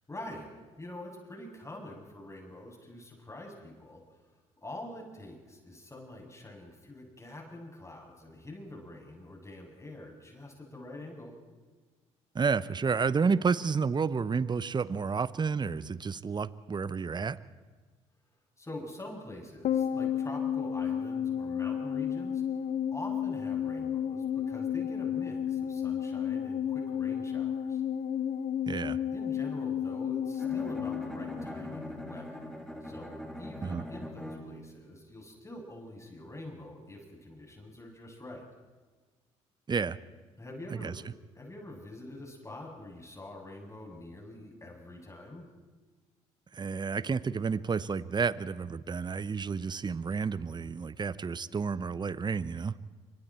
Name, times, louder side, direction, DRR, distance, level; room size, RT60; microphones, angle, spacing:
voice 1, 0.1-0.5 0.8-4.3 4.6-11.3 18.6-27.8 28.8-32.5 32.8-38.4 40.4-41.0 41.3-45.5, left 1 dB, 20° left, 0 dB, 7.8 m, -45 dB
voice 2, 12.3-17.4 28.7-29.0 33.6-33.8 39.7-40.0 40.8-40.9 46.5-52.7, right 5 dB, 30° right, 17 dB, 0.9 m, -30 dB
sound 1, 19.6-32.2 32.4-32.5, left 8 dB, 60° left, 1.3 m, -32 dB
Bowed string instrument, 30.4-34.8, equal, 5° left, 3.9 m, -42 dB
29.0 x 24.5 x 4.5 m, 1.4 s
hypercardioid pair, 55°, 15 cm